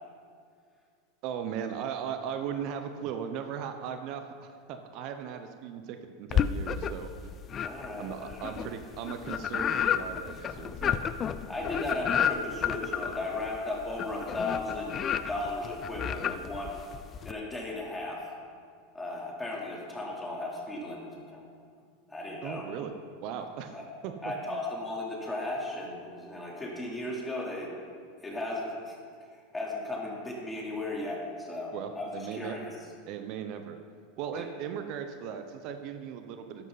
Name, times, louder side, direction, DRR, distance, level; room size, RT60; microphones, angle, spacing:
voice 1, 1.2-7.3 8.0-11.0 22.4-22.9 23.2-23.7 24.0-24.6 31.7-32.6 33.1-33.8 34.2-36.7, right 8 dB, 55° right, 7 dB, 0.9 m, -38 dB
sound 1, 6.3-7.1 7.5-17.3, left 8 dB, 35° left, 0.5 m, -31 dB
voice 2, 7.6-8.5 11.5-16.8 17.2-18.3 18.9-21.5 22.1-22.7 23.7-23.8 24.2-27.7 28.2-29.0 29.3-32.7 34.3-34.5, left 2 dB, 10° left, -3 dB, 3.6 m, -36 dB
13.0 x 11.0 x 4.2 m, 2.2 s
hypercardioid pair, 95°, 0 cm